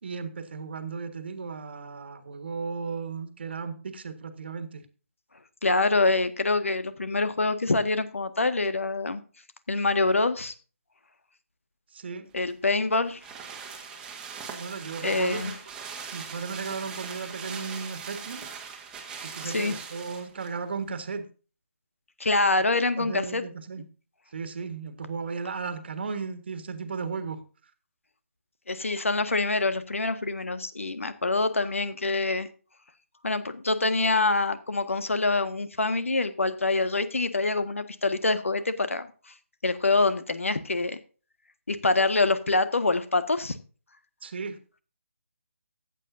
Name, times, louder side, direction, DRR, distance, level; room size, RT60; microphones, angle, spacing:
voice 1, 0.0-4.8 11.9-12.3 14.5-15.5 16.1-18.4 19.2-21.3 23.0-23.8 24.3-27.4 44.2-44.8, right 5 dB, 50° right, 9 dB, 1.6 m, -35 dB
voice 2, 5.6-9.2 9.7-10.5 12.3-13.2 15.0-15.5 19.4-19.7 22.2-23.4 28.7-32.5 33.2-39.1 39.6-41.0 41.7-43.6, left 3 dB, 70° left, 11 dB, 1.6 m, -25 dB
sound 1, 12.4-20.6 20.9-21.0, right 6 dB, 10° right, 1.5 m, -40 dB
15.0 x 8.5 x 2.6 m, 0.36 s
figure-of-eight pair, 150°, 7 cm